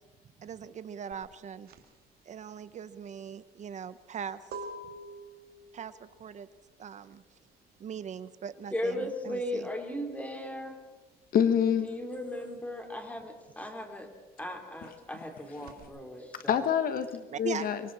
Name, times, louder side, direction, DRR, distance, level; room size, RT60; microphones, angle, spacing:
voice 1, 0.4-1.7 2.3-4.5 5.7-6.5 6.8-7.2 7.8-9.7 17.3-17.7, right 8 dB, 45° right, 14 dB, 0.8 m, -40 dB
sound 1, 1.1-11.3 11.6-15.8, right 2 dB, 65° right, 2.6 m, -49 dB
voice 2, 8.7-10.7 11.8-14.1 14.4-16.6, left 1 dB, 10° left, 3 dB, 3.9 m, -37 dB
voice 3, 11.3-11.9 16.3-17.8, left 8 dB, 60° left, 10 dB, 1.3 m, -26 dB
25.5 x 24.5 x 4.3 m, 1.3 s
cardioid pair, 110°, 17 cm